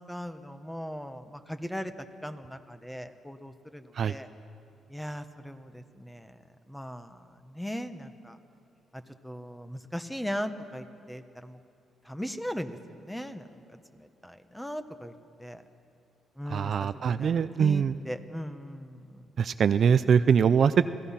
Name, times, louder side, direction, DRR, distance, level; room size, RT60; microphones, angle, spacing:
voice 1, 0.1-1.9 2.2-4.3 4.9-6.4 6.7-8.4 8.9-11.6 12.0-13.6 13.9-15.1 15.4-15.6 16.4-19.2 19.9-20.2, equal, 5° left, 9 dB, 1.2 m, -39 dB
voice 2, 16.5-17.9 19.4-20.9, right 7 dB, 55° right, 12 dB, 0.5 m, -23 dB
27.0 x 17.5 x 5.8 m, 2.5 s
cardioid pair, 90°, 0 cm